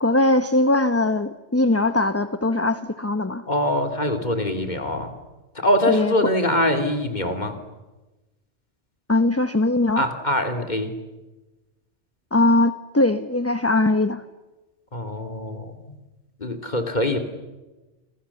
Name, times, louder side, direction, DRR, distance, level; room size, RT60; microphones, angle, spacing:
voice 1, 0.0-3.4 5.9-6.1 9.1-10.0 12.3-14.2, left 2 dB, 15° left, 10 dB, 0.9 m, -20 dB
voice 2, 3.5-5.1 5.5-7.6 10.0-10.9 14.9-15.9 16.4-17.2, left 1 dB, 40° left, 6 dB, 2.8 m, -23 dB
29.0 x 27.0 x 7.1 m, 1.1 s
omnidirectional pair, 1.2 m